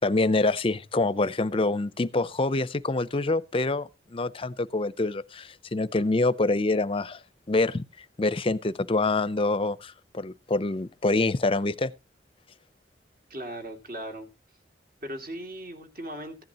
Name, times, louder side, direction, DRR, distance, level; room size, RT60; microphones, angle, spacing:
voice 1, 0.0-7.2 7.5-7.8 8.2-11.9, left 2 dB, 30° left, 0.6 m, -26 dB
voice 2, 13.3-14.3 15.0-16.4, right 1 dB, 50° right, 2.7 m, -38 dB
15.5 x 10.5 x 2.9 m
head